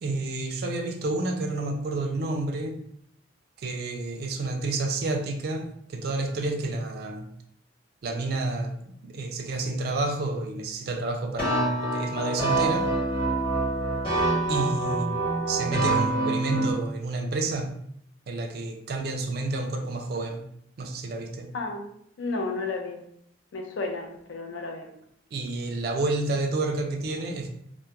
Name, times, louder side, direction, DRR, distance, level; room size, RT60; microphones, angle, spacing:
voice 1, 0.0-2.8 3.6-7.3 8.0-12.9 14.5-15.2 15.5-17.7 18.3-20.5 20.8-21.5 25.3-27.5, right 2 dB, 55° right, 4 dB, 0.3 m, -30 dB
sound 1, 11.4-16.7, right 2 dB, 25° left, 0.9 m, -26 dB
voice 2, 21.5-21.9 22.2-23.0 23.5-24.9, left 3 dB, 80° left, 3 dB, 0.4 m, -32 dB
2.2 x 2.0 x 2.8 m, 0.71 s
head